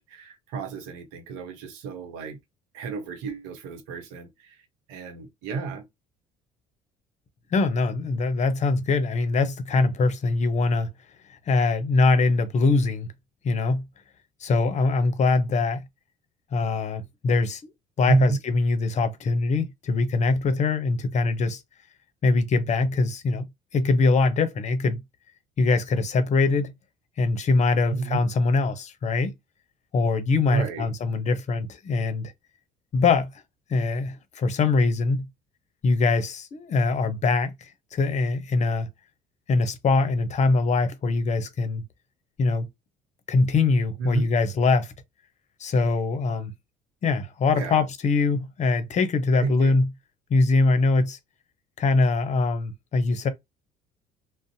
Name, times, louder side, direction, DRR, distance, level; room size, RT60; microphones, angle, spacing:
voice 1, 0.0-2.4 2.7-4.6 4.9-5.8 18.1-18.4 27.9-28.2 30.5-30.9 44.0-44.3 47.5-47.8 49.4-49.8, right 4 dB, 85° right, 0.8 m, -31 dB
voice 2, 7.5-10.9 11.3-13.1 13.4-13.8 14.4-15.8 16.5-17.6 18.0-21.6 22.2-23.5 23.7-25.0 25.6-26.7 27.2-29.3 29.9-32.3 32.9-33.3 33.7-35.2 35.8-38.9 39.5-41.8 42.4-42.7 43.3-44.9 45.6-46.5 47.0-49.9 50.3-51.2 51.8-53.3, left 3 dB, 40° left, 0.7 m, -23 dB
2.5 x 2.0 x 2.7 m
supercardioid pair, 70°, 18 cm